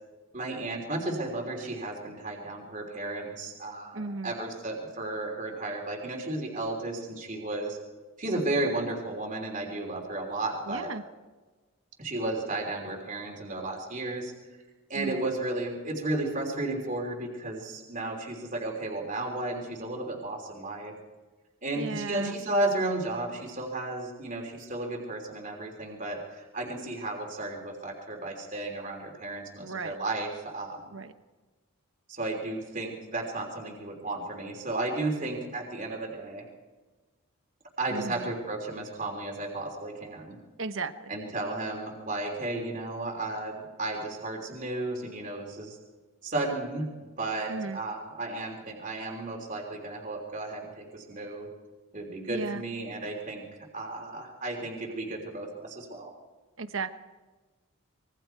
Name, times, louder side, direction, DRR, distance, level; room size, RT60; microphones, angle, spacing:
voice 1, 0.3-7.8 8.2-10.9 12.0-14.3 14.9-21.0 21.6-31.0 32.1-36.5 37.8-40.4 41.1-45.8 46.2-51.5 51.9-56.1, right 2 dB, 35° right, 1 dB, 3.4 m, -33 dB
voice 2, 3.9-4.3 10.7-11.0 14.9-15.2 21.7-22.4 29.6-30.0 30.9-31.1 37.9-38.3 40.6-41.2 47.5-47.8 52.3-52.6 56.6-56.9, right 3 dB, 60° right, 10 dB, 1.1 m, -35 dB
25.5 x 22.5 x 4.6 m, 1.3 s
head